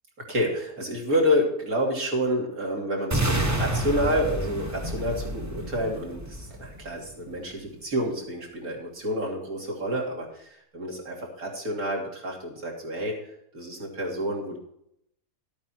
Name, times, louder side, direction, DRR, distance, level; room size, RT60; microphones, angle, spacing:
voice 1, 0.2-14.6, equal, 60° right, -2 dB, 3.4 m, -29 dB
sound 1, 3.1-7.1, right 1 dB, 10° right, 1.0 m, -29 dB
13.0 x 8.7 x 4.6 m, 0.75 s
omnidirectional pair, 1.7 m